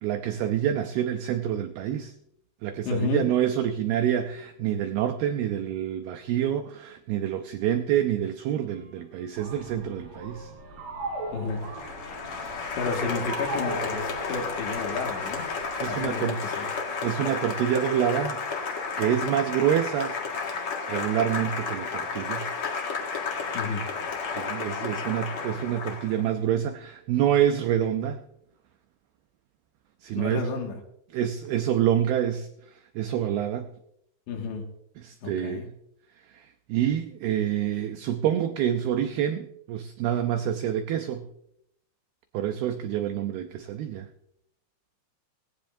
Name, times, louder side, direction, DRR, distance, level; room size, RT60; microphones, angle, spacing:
voice 1, 0.0-2.1 2.6-10.5 15.8-16.8 17.0-18.4 19.0-20.2 20.5-22.5 24.3-28.2 30.0-30.5 31.1-33.7 35.0-35.7 36.3-41.3 42.3-44.1, right 10 dB, 85° right, 8 dB, 2.2 m, -27 dB
voice 2, 2.9-3.2 11.3-11.6 12.8-15.5 15.9-16.7 23.5-23.9 30.2-30.7 34.3-34.6 35.2-35.6, left 4 dB, 75° left, 1 dB, 4.1 m, -31 dB
Wind instrument woodwind instrument, 8.5-11.5 11.8-14.9, equal, 45° right, 8.0 m, -50 dB
sound 1, 9.4-16.1, right 2 dB, 60° right, 5.5 m, -39 dB
Applause, 11.5-26.3, left 5 dB, 50° left, 1.8 m, -32 dB
18.0 x 17.5 x 2.7 m, 0.76 s
omnidirectional pair, 5.3 m